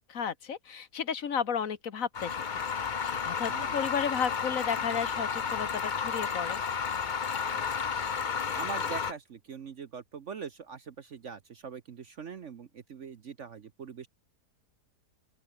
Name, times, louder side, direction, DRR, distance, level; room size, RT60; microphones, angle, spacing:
voice 1, 0.0-6.6, left 7 dB, 55° left, 1.8 m, -33 dB
sound 1, 2.1-9.1, left 6 dB, 35° left, 0.8 m, -32 dB
voice 2, 7.5-8.1 8.5-14.1, right 6 dB, 50° right, 1.2 m, -43 dB
open air
omnidirectional pair, 1.8 m